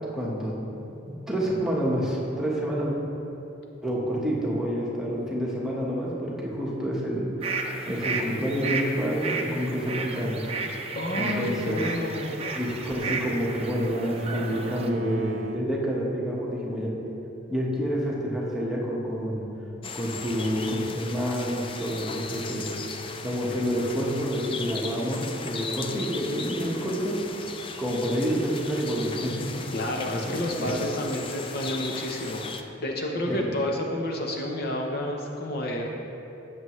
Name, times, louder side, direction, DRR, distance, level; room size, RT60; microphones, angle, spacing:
voice 1, 0.1-0.8 1.1-3.0 3.8-7.6 7.9-10.5 11.1-11.8 12.5-16.9 17.5-19.4 19.9-22.7 23.2-27.2 27.8-29.6 30.5-30.7 33.3-33.6, equal, 5° right, -5 dB, 1.3 m, -28 dB
sound 1, 7.4-14.9, right 4 dB, 30° right, 0.6 m, -33 dB
voice 2, 10.9-12.3 29.7-32.4 32.8-35.9, left 1 dB, 50° left, 0 dB, 0.8 m, -30 dB
Bowed string instrument, 11.9-15.7, right 2 dB, 75° right, 0.4 m, -40 dB
sound 2, 19.8-32.6, left 4 dB, 25° left, 0.4 m, -38 dB
13.0 x 7.8 x 3.2 m, 2.9 s
head